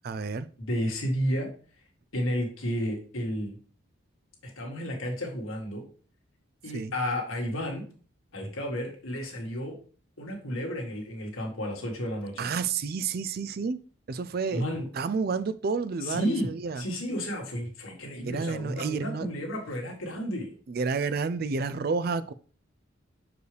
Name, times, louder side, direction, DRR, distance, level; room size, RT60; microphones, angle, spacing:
voice 1, 0.0-0.5 6.7-6.9 12.4-13.8 14.1-14.6 14.9-16.8 18.2-19.3 20.7-22.3, right 4 dB, 50° right, 0.4 m, -30 dB
voice 2, 0.6-1.5 2.1-3.6 4.4-5.8 6.6-7.8 8.3-9.8 10.2-12.5 14.5-14.8 16.0-16.5 16.8-20.5, equal, 85° left, 1.8 m, -32 dB
6.4 x 4.8 x 3.3 m
head